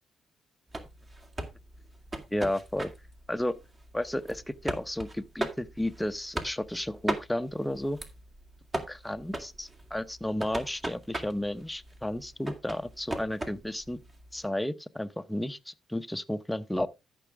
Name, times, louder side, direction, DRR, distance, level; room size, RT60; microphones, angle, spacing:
sound 1, 0.7-14.5, right 1 dB, 30° right, 2.1 m, -39 dB
voice 1, 2.3-2.9 3.3-3.6 3.9-8.0 8.9-14.0 14.3-16.9, left 1 dB, 5° left, 0.8 m, -32 dB
13.5 x 6.2 x 3.5 m
cardioid pair, 90°, 0 cm